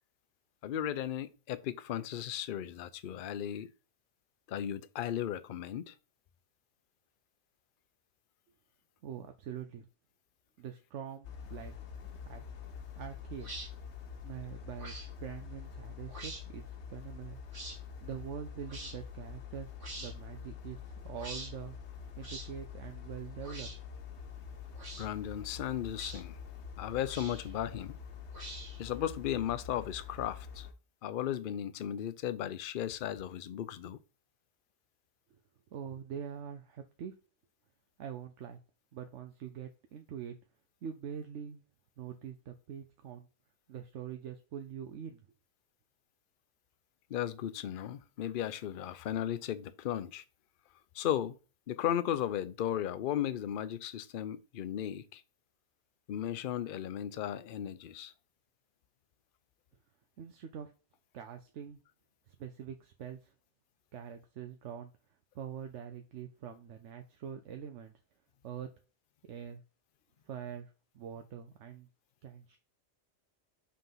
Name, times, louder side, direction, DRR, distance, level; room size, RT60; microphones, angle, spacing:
voice 1, 0.6-3.7 4.5-5.9 25.0-26.4 26.8-27.9 28.8-30.7 31.0-34.0 47.1-50.2 50.9-51.4 51.7-55.2 56.1-58.1, left 10 dB, 55° left, 0.7 m, -35 dB
voice 2, 9.0-9.9 10.6-11.7 12.2-12.4 12.9-13.5 14.2-14.9 15.2-17.4 18.0-20.8 21.0-21.7 22.2-23.7 24.7-24.8 35.3-35.4 35.7-37.1 38.0-38.6 38.9-40.4 40.8-41.6 42.0-43.3 43.7-45.2 60.2-60.7 61.1-61.8 62.3-63.3 63.9-64.9 65.3-67.9 68.4-68.7 69.2-69.6 70.2-71.9 72.2-72.6, right 8 dB, 85° right, 1.0 m, -44 dB
sound 1, 11.2-30.7, left 7 dB, 75° left, 1.2 m, -46 dB
sound 2, 13.4-13.7 14.8-15.1 16.1-16.4 17.5-17.8 18.7-19.0 19.8-20.1 21.2-21.5 22.2-22.5 23.4-23.8 24.8-25.1 26.0-26.2 27.1-27.5 28.3-28.9, right 2 dB, 45° right, 2.0 m, -45 dB
5.7 x 3.6 x 5.6 m
omnidirectional pair, 1.2 m